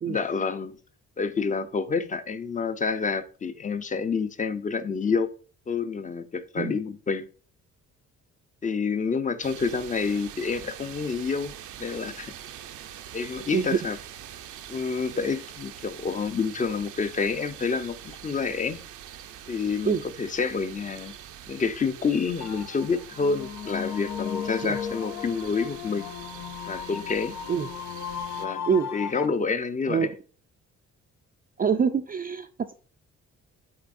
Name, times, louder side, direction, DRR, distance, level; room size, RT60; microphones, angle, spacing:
voice 1, 0.0-0.8 1.2-5.3 5.7-7.3 8.6-11.5 11.8-12.3 13.1-14.0 14.7-18.8 19.5-21.1 21.5-26.1 26.7-27.3 28.4-28.6 28.9-30.1, left 5 dB, 25° left, 0.6 m, -28 dB
sound 1, 9.4-28.5, right 10 dB, 80° right, 0.7 m, -44 dB
sound 2, 22.4-29.3, left 8 dB, 75° left, 0.7 m, -36 dB
voice 2, 31.6-32.7, right 6 dB, 30° right, 0.4 m, -25 dB
11.5 x 4.1 x 2.6 m
cardioid pair, 90°, 30 cm